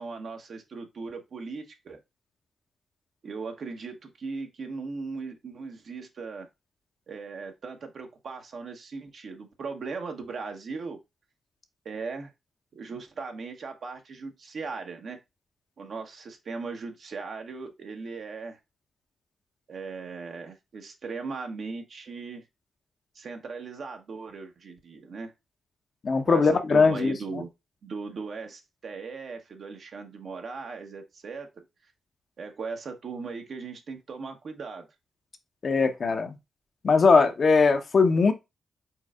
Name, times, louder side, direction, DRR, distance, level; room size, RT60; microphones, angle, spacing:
voice 1, 0.0-2.0 3.2-6.5 7.1-11.0 11.8-12.3 12.7-15.2 15.8-18.6 19.7-22.5 23.1-25.3 26.3-27.5 27.8-31.6 32.4-34.9, right 4 dB, 60° right, 1.0 m, -38 dB
voice 2, 26.0-27.1 35.6-36.4 36.8-38.3, left 4 dB, 55° left, 0.8 m, -20 dB
4.6 x 4.0 x 2.4 m
hypercardioid pair, 40°, 0 cm